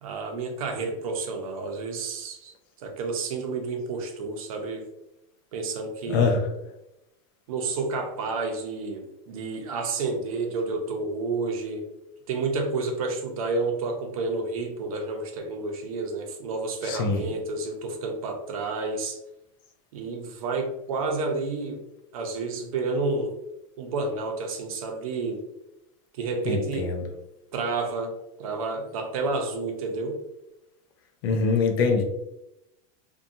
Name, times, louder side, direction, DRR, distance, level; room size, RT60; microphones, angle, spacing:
voice 1, 0.0-2.5 2.8-4.9 5.5-6.4 7.5-11.9 12.3-19.2 19.9-21.8 22.1-23.3 23.8-25.4 26.2-26.9 27.5-30.2, right 3 dB, 85° right, 3 dB, 0.7 m, -30 dB
voice 2, 6.1-6.5 16.8-17.2 26.5-27.1 31.2-32.0, left 4 dB, 40° left, 4 dB, 0.4 m, -24 dB
2.6 x 2.2 x 2.6 m, 0.88 s
supercardioid pair, 180°, 18 cm